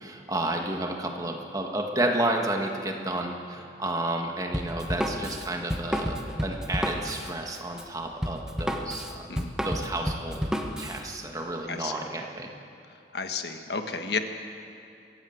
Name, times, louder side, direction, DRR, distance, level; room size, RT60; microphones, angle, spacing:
voice 1, 0.0-10.4 10.8-12.5, right 1 dB, 20° right, 2 dB, 1.7 m, -31 dB
Drum kit, 4.5-11.0, equal, 5° right, 1.2 m, -31 dB
voice 2, 13.1-14.2, left 4 dB, 65° left, 6 dB, 1.5 m, -31 dB
23.5 x 16.0 x 8.0 m, 2.7 s
head